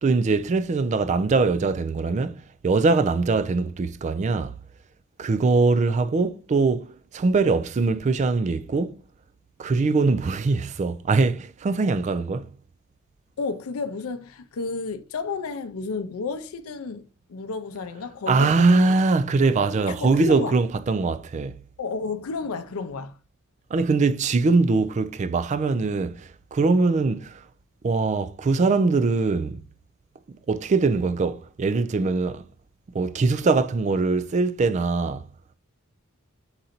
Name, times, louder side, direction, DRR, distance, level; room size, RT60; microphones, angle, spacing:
voice 1, 0.0-4.5 5.2-9.0 9.6-12.6 18.3-21.6 23.7-27.5 27.8-29.6 30.5-32.5 32.9-35.3, right 3 dB, 35° right, 0.3 m, -22 dB
voice 2, 13.4-19.0 19.9-20.5 21.8-23.1, left 4 dB, 85° left, 0.5 m, -31 dB
4.0 x 2.5 x 4.2 m
head